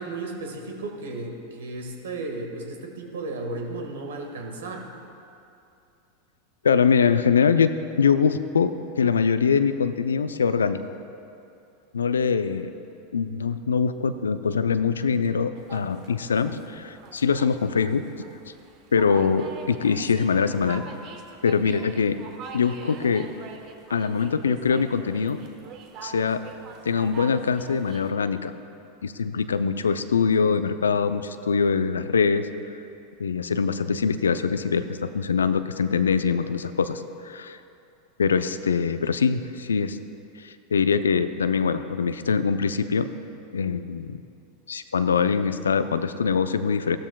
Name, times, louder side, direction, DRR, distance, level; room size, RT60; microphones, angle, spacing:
voice 1, 0.0-4.9, right 2 dB, 70° right, 2 dB, 1.6 m, -34 dB
voice 2, 6.6-7.7 8.0-10.8 11.9-12.7 13.1-18.0 18.9-20.8 21.4-22.2 22.5-23.3 23.9-25.4 26.0-26.4 26.9-28.5 29.0-32.5 33.2-37.6 38.2-40.0 40.4-43.1 43.5-44.2 44.7-47.0, left 6 dB, 80° left, 12 dB, 0.4 m, -23 dB
sound 1, 15.5-28.1, right 5 dB, 45° right, 1.1 m, -44 dB
16.5 x 13.0 x 2.3 m, 2.7 s
hypercardioid pair, 90°, 0 cm